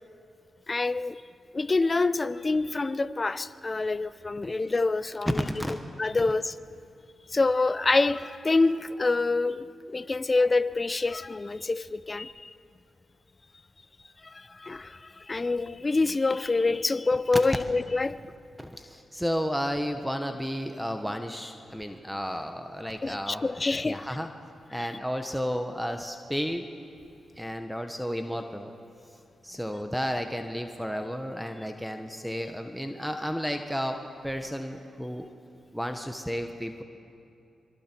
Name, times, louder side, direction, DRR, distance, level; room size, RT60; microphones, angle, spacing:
voice 1, 0.7-1.2 1.5-5.4 6.0-6.5 7.3-9.7 9.9-12.5 14.3-18.2 23.0-24.0, left 3 dB, 35° left, 0.8 m, -26 dB
voice 2, 5.2-5.7 18.6-23.5 23.7-24.3 24.7-26.7 27.4-28.7 29.1-29.2 29.4-35.3 35.7-36.8, equal, ahead, 1.3 m, -32 dB
26.5 x 23.5 x 4.6 m
supercardioid pair, 50°, 0 cm